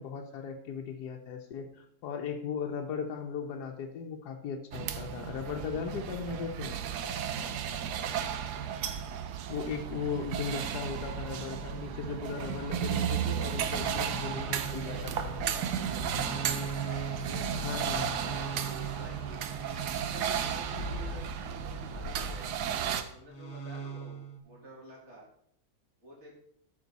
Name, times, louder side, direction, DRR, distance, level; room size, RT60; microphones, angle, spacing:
voice 1, 0.0-6.8 9.5-15.4 17.5-18.2, left 6 dB, 85° left, 2 dB, 1.4 m, -37 dB
sound 1, 4.7-23.0, right 8 dB, 85° right, 1.3 m, -34 dB
sound 2, 13.1-22.6 23.3-24.4, right 2 dB, 70° left, 1.9 m, -40 dB
voice 2, 13.8-16.4 17.1-18.6 18.9-19.4 19.7-22.6 23.1-25.2 26.0-26.3, equal, 45° right, -3 dB, 3.0 m, -50 dB
13.0 x 5.3 x 4.1 m, 0.68 s
omnidirectional pair, 1.7 m